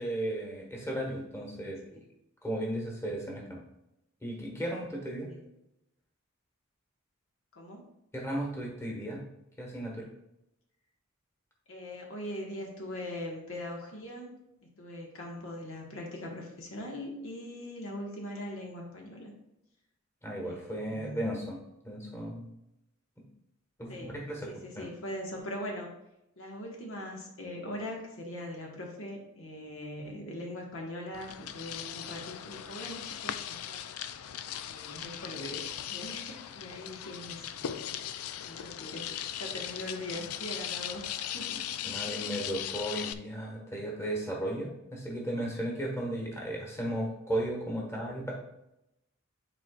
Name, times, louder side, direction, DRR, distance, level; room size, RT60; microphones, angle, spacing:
voice 1, 0.0-1.8 2.4-3.6 4.2-5.3 8.1-9.2 9.6-10.1 20.2-21.6 21.8-22.5 23.8-24.4 24.7-24.9 41.8-48.3, right 1 dB, 15° left, -1 dB, 1.4 m, -35 dB
voice 2, 11.7-14.3 14.8-19.3 20.4-21.3 23.9-25.9 26.4-33.9 34.7-37.8 38.4-41.6, left 1 dB, 65° left, -1 dB, 1.4 m, -41 dB
sound 1, 31.1-43.1, left 10 dB, 85° left, 0.4 m, -38 dB
9.6 x 4.4 x 2.4 m, 0.86 s
head